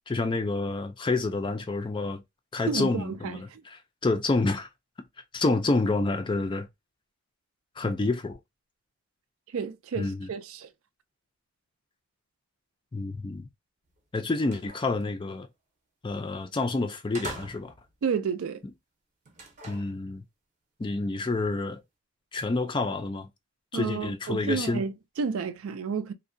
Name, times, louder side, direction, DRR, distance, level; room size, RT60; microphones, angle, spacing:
voice 1, 0.1-2.2 2.5-4.7 5.3-6.7 7.8-8.4 10.0-10.3 12.9-13.5 14.1-15.5 16.0-17.7 19.7-20.2 20.8-21.8 22.3-23.3 23.7-24.8, left 3 dB, 20° left, 0.3 m, -28 dB
voice 2, 2.7-3.6 7.8-7.9 9.5-10.7 18.0-18.6 23.7-26.1, right 6 dB, 75° right, 0.4 m, -31 dB
sound 1, 13.9-14.0 14.4-15.1 16.4-16.6 17.1-17.9 19.3-20.0, right 3 dB, 35° right, 0.7 m, -43 dB
2.6 x 2.1 x 2.5 m
head